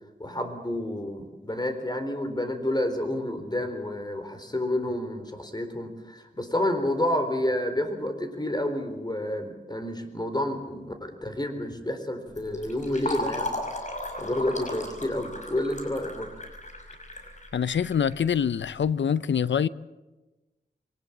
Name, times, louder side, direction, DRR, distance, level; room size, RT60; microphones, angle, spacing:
voice 1, 0.2-13.6 14.2-16.3, left 1 dB, 20° left, 4.1 m, -29 dB
Fill (with liquid), 12.3-18.7, left 1 dB, 40° left, 5.7 m, -36 dB
voice 2, 17.5-19.7, left 7 dB, 85° left, 0.6 m, -25 dB
23.5 x 19.0 x 7.4 m
wide cardioid pair, 65°, 18 cm